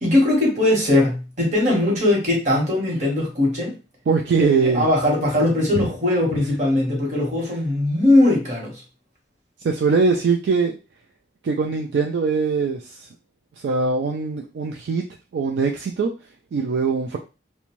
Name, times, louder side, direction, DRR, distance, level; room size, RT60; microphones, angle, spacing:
voice 1, 0.0-3.8 4.6-8.8, left 1 dB, 40° right, -1 dB, 1.1 m, -20 dB
voice 2, 4.1-4.9 9.6-10.8 11.4-13.1 13.6-15.0 15.3-16.1 16.5-17.2, right 4 dB, 65° right, 3 dB, 0.3 m, -21 dB
2.6 x 2.1 x 3.0 m, 0.31 s
head